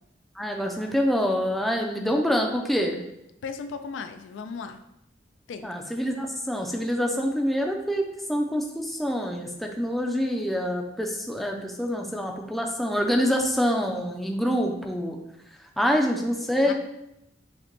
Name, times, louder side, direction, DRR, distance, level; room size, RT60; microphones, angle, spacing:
voice 1, 0.4-3.0 5.6-8.0 8.3-15.2 15.8-16.7, equal, ahead, 1 dB, 0.4 m, -26 dB
voice 2, 3.4-4.8 5.5-5.7 16.6-16.7, left 5 dB, 85° left, 8 dB, 0.3 m, -36 dB
6.4 x 2.2 x 3.0 m, 0.83 s
head